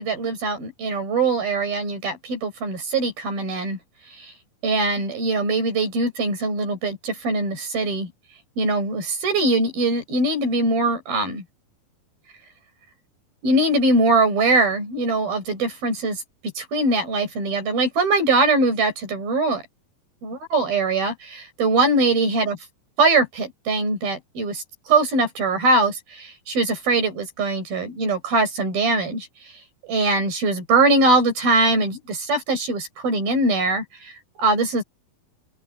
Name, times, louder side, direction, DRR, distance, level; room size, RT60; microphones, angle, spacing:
voice 1, 0.0-3.8 4.2-4.3 4.6-8.1 8.6-11.4 13.4-16.2 16.6-19.6 20.2-22.6 23.0-24.6 24.9-29.3 29.8-33.8 34.4-34.8, right 2 dB, 70° right, 9.1 m, -22 dB
open air
omnidirectional pair, 4.4 m